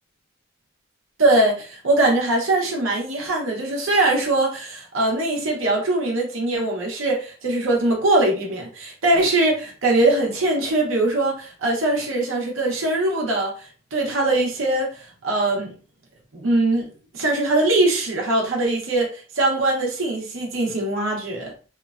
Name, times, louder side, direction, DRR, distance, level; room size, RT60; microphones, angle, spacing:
voice 1, 1.2-13.7 13.9-15.7 16.3-16.9 17.1-21.5, right 2 dB, 80° right, 0.8 m, -21 dB
2.9 x 2.2 x 2.4 m
head